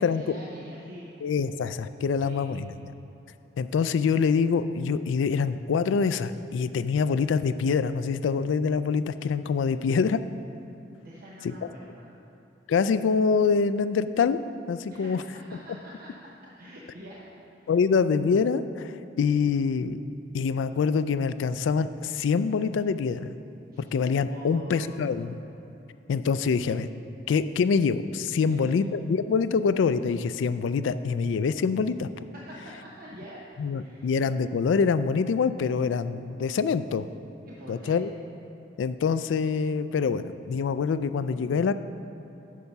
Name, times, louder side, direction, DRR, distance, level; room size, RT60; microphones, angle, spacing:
voice 1, 0.0-1.1 2.2-2.5 11.0-12.1 14.9-16.1 16.6-17.3 17.6-17.8 23.7-23.9 24.3-25.0 28.4-28.8 32.3-33.4 33.7-34.1 37.5-38.0, equal, 50° right, -4 dB, 0.8 m, -45 dB
voice 2, 1.2-2.7 3.6-10.2 11.4-11.5 12.7-14.4 14.7-15.2 17.7-20.0 20.3-23.3 23.9-25.4 26.1-26.9 27.3-32.1 33.6-37.0 37.7-38.1 38.8-41.7, left 5 dB, 85° left, 13 dB, 0.3 m, -25 dB
8.4 x 5.8 x 5.4 m, 2.9 s
head